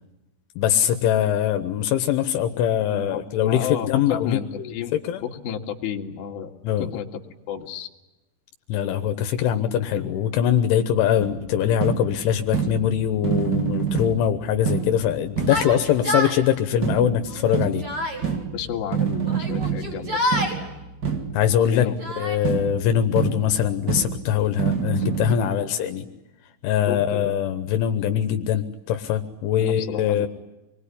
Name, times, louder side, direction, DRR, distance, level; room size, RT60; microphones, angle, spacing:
voice 1, 0.6-4.4 4.7-5.2 6.6-6.9 8.7-17.9 21.3-21.9 22.2-26.1 26.6-30.3, left 10 dB, 80° left, 8 dB, 3.5 m, -22 dB
voice 2, 2.9-5.0 5.2-6.5 6.8-7.2 7.5-7.9 18.5-20.7 21.7-21.9 25.2-25.5 26.9-27.3 29.6-30.3, left 8 dB, 55° left, 2 dB, 3.5 m, -32 dB
sound 1, 11.2-16.0 16.8-21.7 22.4-25.3, right 7 dB, 55° right, 1.1 m, -28 dB
Yell, 15.5-16.4 17.3-18.2 19.2-20.6 21.4-22.4, equal, 30° right, 4.8 m, -28 dB
26.5 x 22.0 x 10.0 m, 1.0 s
omnidirectional pair, 5.6 m